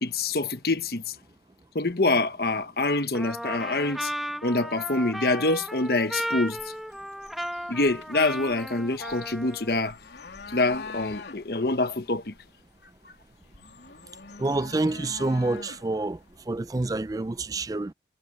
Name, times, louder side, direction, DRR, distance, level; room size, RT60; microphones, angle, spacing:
voice 1, 0.0-1.1 1.7-4.1 4.4-6.6 7.7-10.0 10.5-12.3, left 2 dB, 60° left, 1.2 m, -26 dB
Trumpet, 3.1-9.8, equal, ahead, 1.7 m, -35 dB
sound 1, 6.6-17.4, left 4 dB, 80° left, 2.8 m, -46 dB
voice 2, 14.4-16.2 16.5-17.9, right 2 dB, 20° right, 0.4 m, -27 dB
head